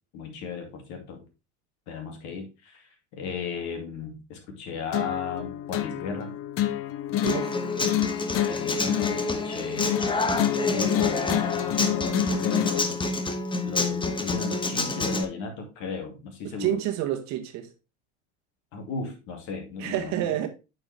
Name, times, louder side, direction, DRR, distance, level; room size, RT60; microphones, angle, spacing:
voice 1, 0.1-1.2 1.9-6.4 8.5-13.0 13.6-16.8 18.7-20.5, left 4 dB, 55° left, 2.4 m, -35 dB
sound 1, 4.9-12.9, left 13 dB, 40° left, 0.7 m, -28 dB
voice 2, 7.2-7.7 16.4-17.7 19.8-20.5, right 12 dB, 50° right, 1.5 m, -29 dB
Human voice / Acoustic guitar, 7.3-15.2, left 3 dB, 15° left, 1.0 m, -28 dB
8.6 x 4.7 x 3.4 m
hypercardioid pair, 80°, 35 cm